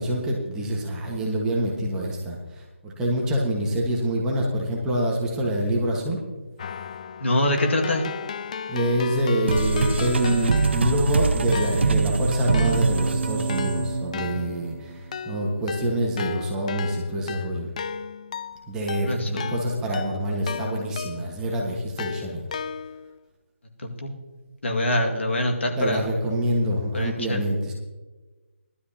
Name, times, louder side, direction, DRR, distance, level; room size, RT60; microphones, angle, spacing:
voice 1, 0.0-6.2 8.7-17.7 18.7-22.4 25.8-27.7, right 1 dB, 10° right, -3 dB, 1.5 m, -26 dB
Keyboard (musical), 6.6-11.1 11.5-21.4 22.0-23.2, left 7 dB, 35° left, 0.4 m, -35 dB
voice 2, 7.2-8.0 19.0-19.5 24.0-24.1 24.6-26.1 26.9-27.4, left 1 dB, 65° left, 1 dB, 2.0 m, -24 dB
sound 1, 9.5-14.8, right 4 dB, 55° right, 0.9 m, -24 dB
18.0 x 12.5 x 2.9 m, 1.2 s
figure-of-eight pair, 160°, 7 cm